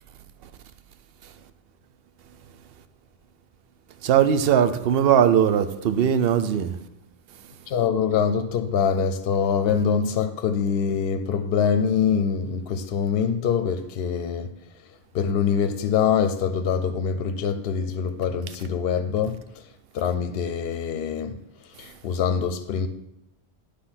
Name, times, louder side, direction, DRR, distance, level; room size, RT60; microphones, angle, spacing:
voice 1, 4.0-6.8, right 9 dB, 70° right, 0.8 m, -19 dB
voice 2, 7.7-14.5 15.1-19.7 19.9-21.4 21.8-22.9, left 7 dB, 70° left, 0.7 m, -24 dB
9.8 x 3.3 x 5.6 m
omnidirectional pair, 1.1 m